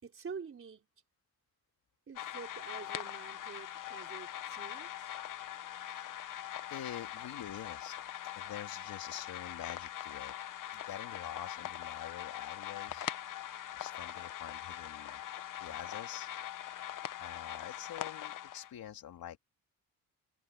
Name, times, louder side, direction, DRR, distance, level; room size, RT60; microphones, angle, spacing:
voice 1, 0.0-0.9 2.1-5.1, right 5 dB, 40° right, 4.7 m, -47 dB
sound 1, 2.2-18.7, left 11 dB, 60° left, 0.9 m, -42 dB
voice 2, 5.6-6.4 6.7-8.0 8.3-10.3 10.7-13.1 13.7-15.2 15.6-16.3 17.2-19.4, left 10 dB, 85° left, 3.1 m, -46 dB
wide cardioid pair, 145°, 35 cm